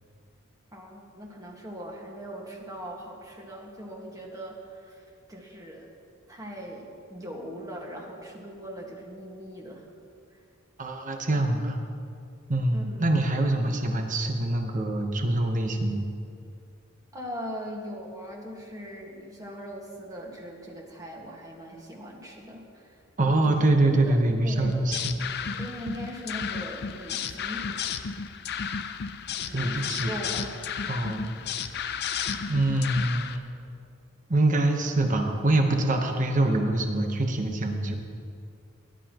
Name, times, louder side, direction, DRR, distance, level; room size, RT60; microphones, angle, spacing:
voice 1, 0.7-5.0 5.3-5.9 6.3-9.9 12.7-13.3 17.1-23.0 23.4-23.5 23.9-24.2 24.4-24.7 25.6-27.7 29.5-30.6, equal, 15° right, -1 dB, 1.7 m, -40 dB
voice 2, 10.8-11.8 12.5-16.0 23.2-25.3 29.5-30.1 30.9-31.3 32.5-33.5 34.3-38.0, right 2 dB, 40° right, 3 dB, 1.1 m, -25 dB
sound 1, 24.6-33.4, left 7 dB, 50° left, 0.5 m, -33 dB
19.5 x 11.5 x 3.0 m, 2.4 s
head